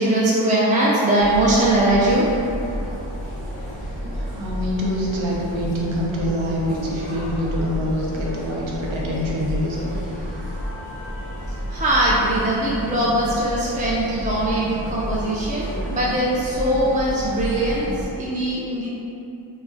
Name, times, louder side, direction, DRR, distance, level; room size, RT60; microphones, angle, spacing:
voice 1, 0.0-2.3 11.7-18.9, right 1 dB, 20° right, -6 dB, 0.3 m, -21 dB
sound 1, 1.2-18.1, equal, 15° left, 0.8 m, -31 dB
voice 2, 4.0-10.0, equal, 80° right, -4 dB, 0.7 m, -25 dB
2.3 x 2.1 x 3.7 m, 2.9 s
cardioid pair, 60°, 47 cm